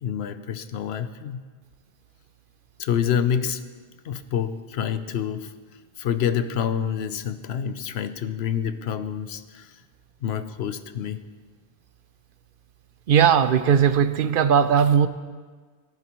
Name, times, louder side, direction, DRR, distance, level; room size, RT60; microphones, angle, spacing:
voice 1, 0.0-1.4 2.8-3.6 4.0-5.5 6.0-9.8 10.2-11.2, left 8 dB, 85° left, 11 dB, 0.9 m, -27 dB
voice 2, 13.1-15.1, right 7 dB, 65° right, 12 dB, 0.7 m, -18 dB
18.5 x 11.0 x 3.1 m, 1.5 s
omnidirectional pair, 1.0 m